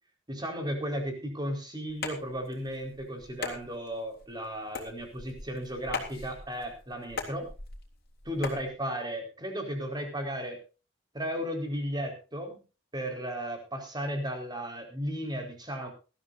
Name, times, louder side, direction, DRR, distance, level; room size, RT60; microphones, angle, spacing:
voice 1, 0.3-7.5 8.2-10.6 11.1-12.6 12.9-15.9, equal, 20° right, 4 dB, 4.5 m, -35 dB
sound 1, 1.9-8.7, left 4 dB, 50° left, 3.6 m, -40 dB
20.0 x 13.5 x 2.6 m, 0.34 s
head